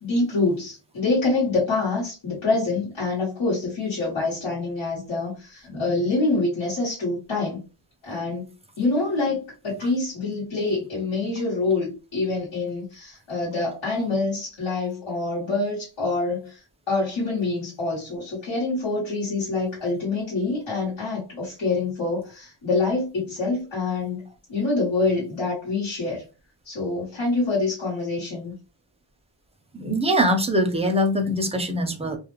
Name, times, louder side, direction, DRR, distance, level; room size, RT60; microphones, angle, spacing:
voice 1, 0.0-7.6 8.0-8.5 8.8-24.2 24.5-26.2 26.6-28.5, left 3 dB, 80° left, -8 dB, 1.2 m, -26 dB
voice 2, 29.7-32.2, equal, 15° right, 4 dB, 0.4 m, -22 dB
2.4 x 2.0 x 2.9 m, 0.32 s
wide cardioid pair, 110°, 47 cm